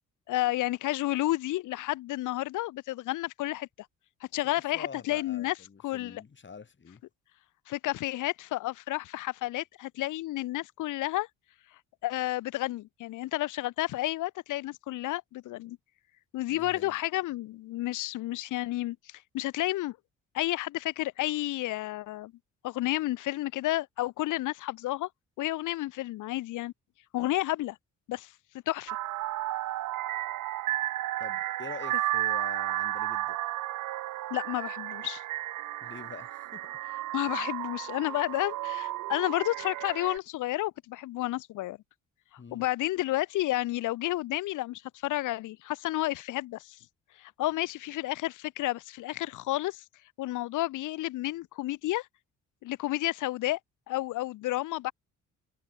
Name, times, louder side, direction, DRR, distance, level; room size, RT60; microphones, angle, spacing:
voice 1, 0.3-3.7 4.3-5.5 5.8-6.2 7.7-11.3 12.0-15.8 16.3-20.0 20.3-22.3 22.6-25.1 25.4-26.7 27.1-27.8 28.1-28.3 28.7-29.0 34.3-35.2 37.1-41.8 42.5-46.8 47.2-49.8 50.2-52.1 52.6-53.6 53.9-54.9, left 16 dB, 85° left, 0.9 m, -31 dB
voice 2, 4.4-7.0 16.5-17.0 31.2-33.4 35.8-36.7 42.4-42.7, left 5 dB, 40° left, 7.6 m, -46 dB
sound 1, 28.9-40.2, right 16 dB, 80° right, 1.1 m, -33 dB
open air
cardioid pair, 90°, 30 cm